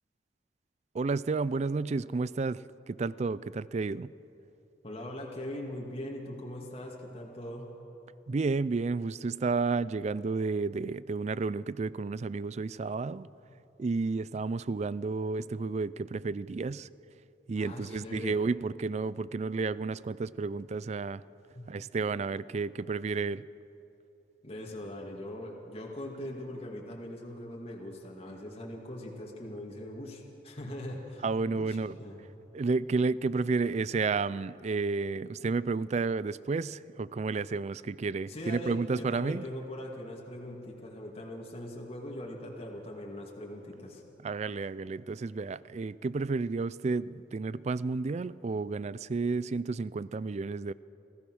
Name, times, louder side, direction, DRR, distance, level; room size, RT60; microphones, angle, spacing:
voice 1, 0.9-4.1 8.3-13.3 13.8-16.9 17.5-21.2 21.7-23.5 31.2-32.0 32.5-39.5 44.2-50.7, right 4 dB, 40° right, 19 dB, 0.4 m, -31 dB
voice 2, 4.8-7.8 13.5-13.6 17.6-18.4 21.5-21.7 24.4-31.2 31.5-32.3 38.3-44.0, left 1 dB, 35° left, -2 dB, 2.3 m, -41 dB
26.5 x 16.0 x 6.3 m, 3.0 s
head